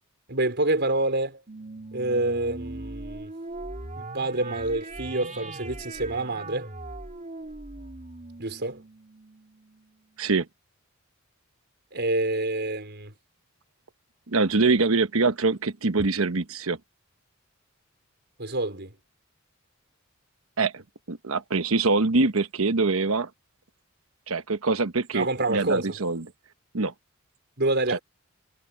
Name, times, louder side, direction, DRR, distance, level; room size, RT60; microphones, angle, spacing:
voice 1, 0.3-1.4 1.9-3.3 4.0-6.7 8.4-8.8 11.9-13.1 18.4-18.9 25.1-25.9 27.6-28.0, right 2 dB, 55° right, 4.9 m, -27 dB
sound 1, 1.5-10.2, right 2 dB, 35° right, 3.4 m, -40 dB
voice 2, 14.3-16.8 20.6-20.8 21.1-23.3 24.3-26.3 26.7-26.9 27.9-28.0, right 3 dB, 80° right, 1.1 m, -24 dB
head